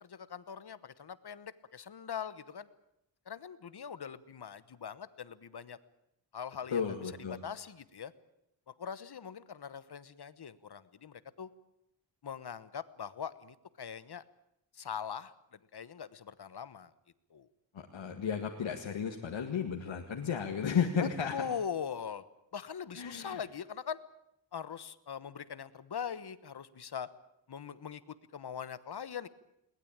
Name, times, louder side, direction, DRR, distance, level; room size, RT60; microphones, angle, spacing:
voice 1, 0.0-2.7 3.3-5.8 6.3-7.0 7.3-8.1 8.7-11.5 12.2-14.2 14.7-15.3 15.7-16.9 17.3-17.5 21.0-22.2 22.5-24.0 24.5-27.1 27.5-29.3, left 7 dB, 55° left, 15 dB, 1.2 m, -42 dB
voice 2, 6.7-7.4 17.7-21.3 23.0-23.4, left 6 dB, 90° left, 2 dB, 1.9 m, -33 dB
21.5 x 19.5 x 8.8 m, 0.80 s
wide cardioid pair, 130°, 45 cm